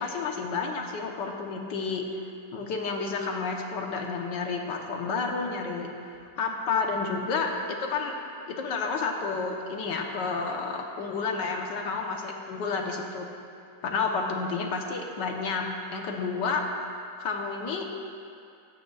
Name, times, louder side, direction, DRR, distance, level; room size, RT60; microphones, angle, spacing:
voice 1, 0.0-2.1 2.5-7.5 7.8-8.1 8.5-13.3 13.8-15.7 15.9-16.6 17.2-18.0, left 4 dB, 80° left, 1 dB, 1.8 m, -30 dB
24.0 x 9.0 x 2.4 m, 2.5 s
omnidirectional pair, 1.9 m